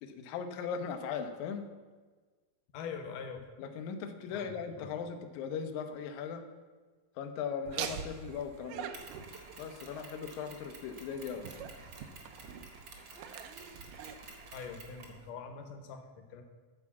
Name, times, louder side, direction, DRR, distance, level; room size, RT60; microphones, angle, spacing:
voice 1, 0.0-1.7 3.6-6.4 7.2-8.9 9.6-11.5, left 6 dB, 90° left, 6 dB, 1.7 m, -38 dB
voice 2, 2.7-3.4 4.3-5.0 14.5-16.4, left 6 dB, 70° left, 5 dB, 2.1 m, -44 dB
Laughter, 7.7-15.3, right 8 dB, 85° right, 1.9 m, -45 dB
Mechanisms, 8.9-15.2, right 3 dB, 65° right, 1.2 m, -52 dB
12.5 x 4.7 x 7.1 m, 1.4 s
omnidirectional pair, 4.6 m